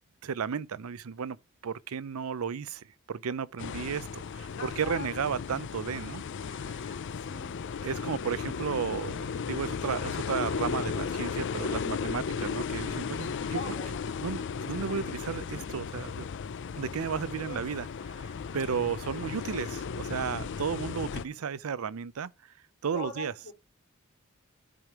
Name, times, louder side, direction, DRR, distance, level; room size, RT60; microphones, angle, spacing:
voice 1, 0.2-1.4 1.6-6.7 7.8-13.6 14.2-16.3 16.8-17.9 18.2-18.3 18.5-22.3 22.8-23.3, right 6 dB, 85° right, 0.5 m, -34 dB
sound 1, 3.6-21.2, left 6 dB, 60° left, 0.4 m, -35 dB
voice 2, 4.6-5.1 7.1-7.6 13.5-14.0 17.4-17.6 22.9-23.5, left 3 dB, 75° left, 2.9 m, -41 dB
12.5 x 5.0 x 3.0 m
head